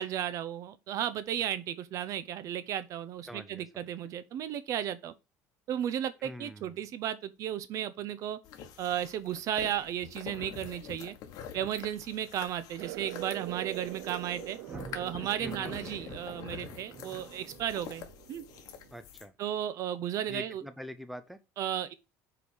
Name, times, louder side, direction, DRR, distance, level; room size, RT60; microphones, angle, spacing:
voice 1, 0.0-5.1 5.7-8.4 8.8-11.1 11.5-14.6 14.9-18.4 19.4-20.6 21.6-21.9, right 10 dB, 45° right, 0.7 m, -34 dB
voice 2, 3.3-3.8 6.2-6.8 15.4-15.7 18.9-19.3 20.3-21.4, equal, ahead, 0.6 m, -44 dB
sound 1, 8.4-19.3, left 8 dB, 55° left, 1.4 m, -47 dB
sound 2, 12.8-18.9, right 17 dB, 80° right, 0.4 m, -44 dB
Thunder, 14.5-17.9, right 2 dB, 20° right, 2.3 m, -46 dB
5.2 x 4.9 x 6.2 m
cardioid pair, 155°, 8 cm